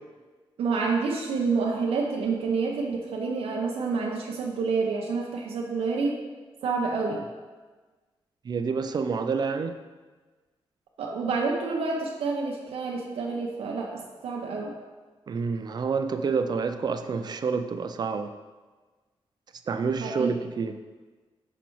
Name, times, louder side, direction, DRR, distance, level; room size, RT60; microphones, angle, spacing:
voice 1, 0.6-6.2 6.6-7.2 11.0-14.7 20.0-20.3, right 4 dB, 85° right, -1 dB, 0.6 m, -28 dB
voice 2, 8.4-9.8 15.3-18.3 19.7-20.8, right 5 dB, 45° right, 8 dB, 0.4 m, -28 dB
5.8 x 5.2 x 3.1 m, 1.3 s
cardioid pair, 85°, 10 cm